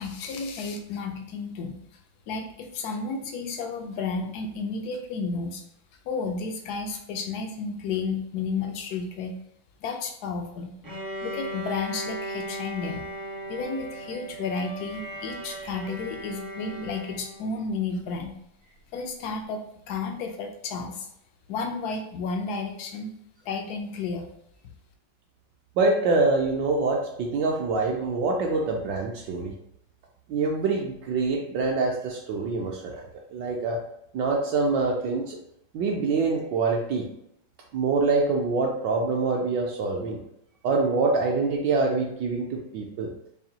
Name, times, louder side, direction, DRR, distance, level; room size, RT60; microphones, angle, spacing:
voice 1, 0.0-1.7 2.3-5.6 6.1-9.3 9.8-10.7 11.2-13.0 13.5-18.3 18.9-21.1 21.5-23.1 23.5-24.3, left 4 dB, 80° left, 3 dB, 0.8 m, -32 dB
Bowed string instrument, 10.8-17.6, right 1 dB, 25° right, 0.4 m, -37 dB
voice 2, 25.8-29.5 30.3-33.1 33.3-33.8 34.1-35.4 35.7-37.1 37.7-40.2 40.6-43.1, right 3 dB, 75° right, 0 dB, 1.1 m, -25 dB
4.8 x 2.6 x 2.7 m, 0.78 s
omnidirectional pair, 2.2 m